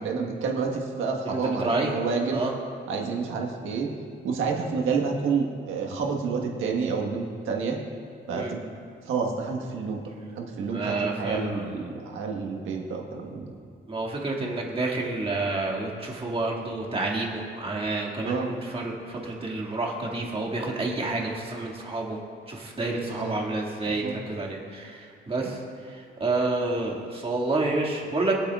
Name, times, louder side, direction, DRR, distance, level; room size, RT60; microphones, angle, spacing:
voice 1, 0.0-2.4 2.9-3.9 4.2-7.8 8.3-8.6 9.1-10.0 10.3-13.5 18.2-18.5 23.0-23.4 23.9-24.2 25.4-25.6, right 5 dB, 85° right, 1 dB, 1.5 m, -29 dB
voice 2, 1.2-1.9 2.3-2.5 8.3-8.5 10.7-11.6 13.9-22.2 22.5-25.6 25.9-28.4, right 2 dB, 30° right, -2 dB, 2.2 m, -29 dB
22.0 x 8.4 x 2.5 m, 2.3 s
cardioid pair, 90°, 20 cm